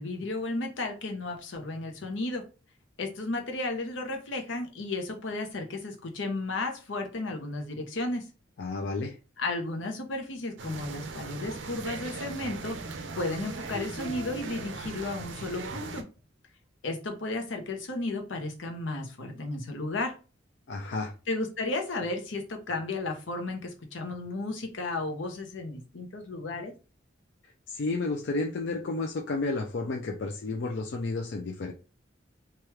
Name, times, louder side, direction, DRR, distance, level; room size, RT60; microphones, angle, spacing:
voice 1, 0.0-2.4 3.0-8.3 9.4-16.0 16.8-20.2 21.3-26.7, left 2 dB, 90° left, 4 dB, 0.8 m, -33 dB
voice 2, 8.6-9.2 20.7-21.1 27.7-31.7, left 3 dB, 65° left, 2 dB, 0.4 m, -31 dB
sound 1, 10.6-16.0, right 3 dB, 75° right, 0.5 m, -38 dB
3.1 x 2.3 x 3.1 m, 0.33 s
head